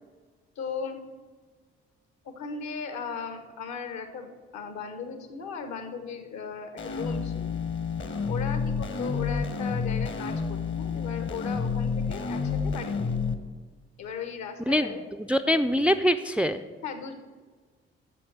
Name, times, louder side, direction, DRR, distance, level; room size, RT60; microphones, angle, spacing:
voice 1, 0.5-1.0 2.2-7.6 8.3-13.3 14.0-15.0 16.8-17.1, left 6 dB, 60° left, 8 dB, 1.3 m, -37 dB
sound 1, 6.8-13.3, left 5 dB, 35° left, 1.0 m, -29 dB
voice 2, 15.2-16.6, equal, 5° right, 9 dB, 0.4 m, -23 dB
8.3 x 7.1 x 7.8 m, 1.5 s
figure-of-eight pair, 40°, 33 cm